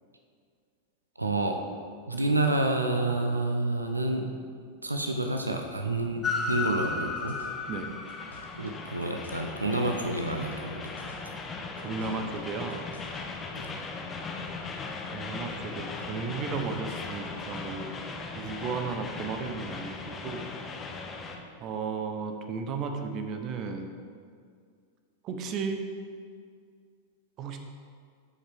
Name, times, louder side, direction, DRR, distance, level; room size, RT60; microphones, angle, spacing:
voice 1, 1.2-1.6 2.1-4.3 4.8-7.3 8.6-11.2 13.5-13.8, right 2 dB, 80° right, 4 dB, 0.6 m, -29 dB
sound 1, 6.0-8.8 9.0-10.6 10.9-13.2, left 1 dB, 75° left, 1.2 m, -50 dB
Train, 6.2-21.4, left 4 dB, 20° left, 0.8 m, -37 dB
voice 2, 11.8-12.9 15.1-18.0 18.3-20.5 21.6-23.9 25.2-25.9 27.4-27.6, right 5 dB, 35° right, 6 dB, 0.7 m, -34 dB
12.5 x 5.3 x 3.5 m, 2.1 s
figure-of-eight pair, 90°, 0 cm